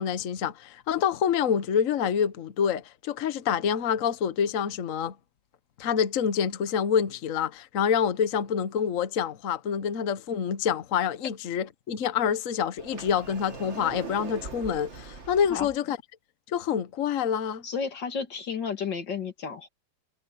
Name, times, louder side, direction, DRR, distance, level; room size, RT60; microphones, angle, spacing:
voice 1, 0.0-5.1 5.8-16.0 16.5-17.6, left 8 dB, 50° left, 1.3 m, -27 dB
Sliding door, 12.8-15.8, right 4 dB, 40° right, 2.0 m, -41 dB
voice 2, 17.6-19.7, left 6 dB, 80° left, 2.9 m, -32 dB
omnidirectional pair, 1.9 m